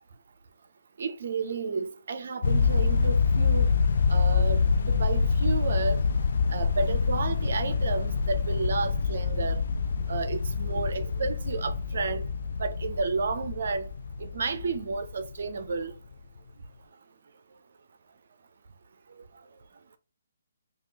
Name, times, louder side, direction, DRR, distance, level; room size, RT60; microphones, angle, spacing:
voice 1, 1.0-3.7 4.1-6.0 6.5-9.6 10.1-12.3 12.6-13.9 14.2-15.9, right 4 dB, 60° right, 0.4 m, -31 dB
sound 1, 2.4-15.7, left 5 dB, 65° left, 0.3 m, -26 dB
3.2 x 2.4 x 2.8 m
figure-of-eight pair, 140°, 0 cm